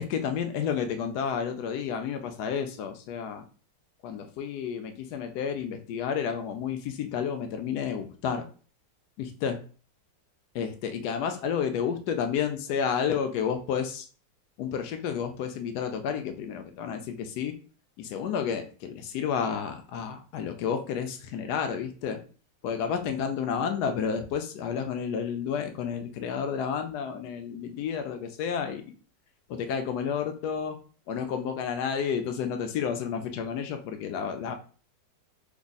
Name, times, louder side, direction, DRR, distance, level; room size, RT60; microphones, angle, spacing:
voice 1, 0.0-3.4 4.0-8.4 9.2-9.6 10.5-14.1 14.6-17.5 18.0-22.2 22.6-28.8 29.5-30.8 31.1-34.6, left 7 dB, 70° left, 6 dB, 1.0 m, -31 dB
3.5 x 2.0 x 3.9 m, 0.39 s
omnidirectional pair, 1.9 m